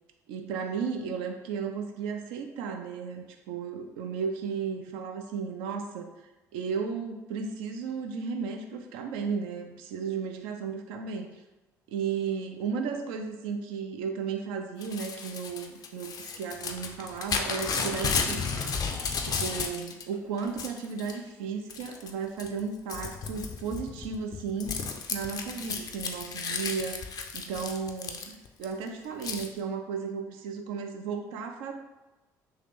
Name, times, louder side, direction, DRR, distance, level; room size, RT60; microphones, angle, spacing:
voice 1, 0.3-6.1 6.5-11.3 11.9-18.7 19.2-27.0 27.3-31.7, right 6 dB, 65° right, 4 dB, 0.4 m, -34 dB
Crumpling crinkling / Tearing, 14.8-20.0 20.4-21.2 21.7-22.1 22.4-28.6 29.2-29.5, left 5 dB, 40° left, 0.4 m, -33 dB
3.1 x 2.7 x 3.5 m, 1.1 s
figure-of-eight pair, 50°, 10 cm